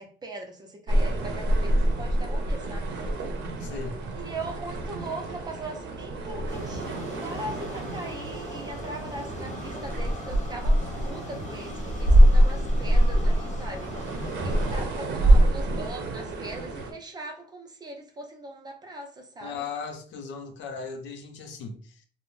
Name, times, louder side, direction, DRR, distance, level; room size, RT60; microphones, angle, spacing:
voice 1, 0.0-2.9 4.1-19.6, right 2 dB, 20° right, 0.4 m, -40 dB
sound 1, 0.9-16.9, right 1 dB, 70° right, 0.6 m, -25 dB
voice 2, 3.6-4.0 19.4-22.1, left 5 dB, 85° left, 0.5 m, -37 dB
sound 2, 6.5-14.8, left 2 dB, 40° left, 0.6 m, -40 dB
2.5 x 2.0 x 3.0 m
cardioid pair, 180°, 19 cm